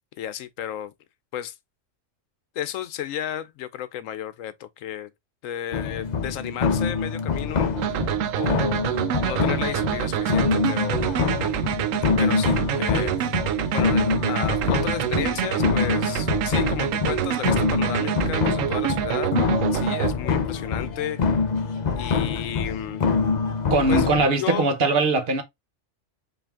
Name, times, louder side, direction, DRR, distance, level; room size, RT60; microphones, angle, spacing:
voice 1, 0.2-0.9 1.3-1.5 2.5-5.1 5.4-8.1 8.3-8.9 9.2-11.0 12.2-13.1 13.7-19.3 19.7-21.2 22.0-23.0 23.9-24.1 24.4-24.7, left 10 dB, 90° left, 1.0 m, -33 dB
sound 1, 5.7-24.3, left 5 dB, 45° left, 0.6 m, -25 dB
sound 2, 7.8-20.1, right 11 dB, 85° right, 1.0 m, -26 dB
voice 2, 23.7-25.4, right 3 dB, 50° right, 1.0 m, -21 dB
5.2 x 2.7 x 3.5 m
omnidirectional pair, 1.3 m